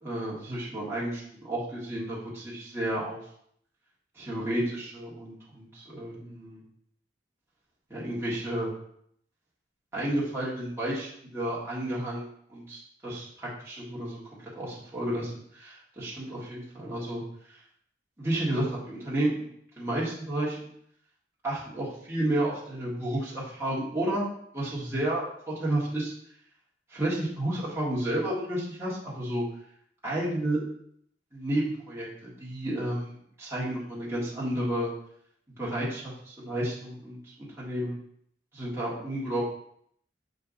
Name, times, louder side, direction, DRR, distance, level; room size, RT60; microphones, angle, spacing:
voice 1, 0.0-3.2 4.2-6.6 7.9-8.7 9.9-14.2 14.5-17.2 17.5-17.6 18.2-19.4 19.8-20.7 21.4-24.2 24.5-26.1 26.9-29.4 30.0-30.6 31.3-34.9 35.6-38.0 38.5-39.4, right 1 dB, 15° right, -7 dB, 1.7 m, -31 dB
6.4 x 4.4 x 4.0 m, 0.67 s
head